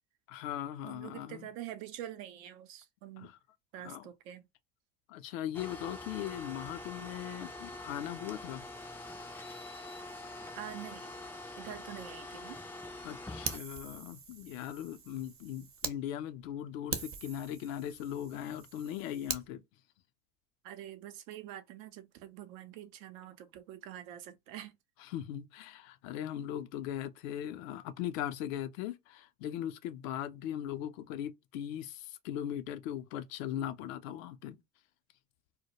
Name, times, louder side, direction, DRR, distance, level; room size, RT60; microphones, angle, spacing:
voice 1, 0.3-1.5 3.2-3.4 3.8-4.1 5.1-8.6 13.0-19.6 25.0-34.6, left 11 dB, 75° left, 0.5 m, -39 dB
voice 2, 0.9-3.3 3.7-4.5 10.5-11.1 11.6-12.6 20.6-24.8, right 12 dB, 75° right, 0.6 m, -46 dB
sound 1, 5.5-13.6, left 2 dB, 5° left, 0.3 m, -45 dB
Fire, 13.4-16.0 16.4-16.5 16.9-19.5, right 6 dB, 35° right, 0.7 m, -42 dB
2.1 x 2.1 x 2.9 m
hypercardioid pair, 70°, 40 cm